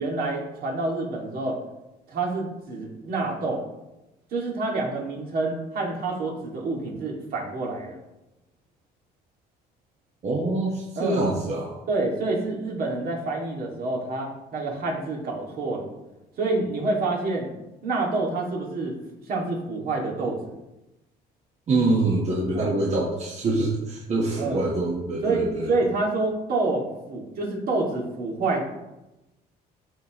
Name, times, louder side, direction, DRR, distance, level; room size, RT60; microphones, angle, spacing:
voice 1, 0.0-1.6 2.1-3.6 4.3-8.0 11.0-11.2 11.9-15.9 16.4-17.5 17.8-19.0 19.3-20.5 22.5-22.7 24.4-24.6 25.2-28.7, right 3 dB, 60° right, -1 dB, 2.2 m, -27 dB
voice 2, 10.2-11.8 21.7-25.7, right 2 dB, 40° right, -2 dB, 1.3 m, -25 dB
12.5 x 4.2 x 3.0 m, 0.96 s
cardioid pair, 110°, 17 cm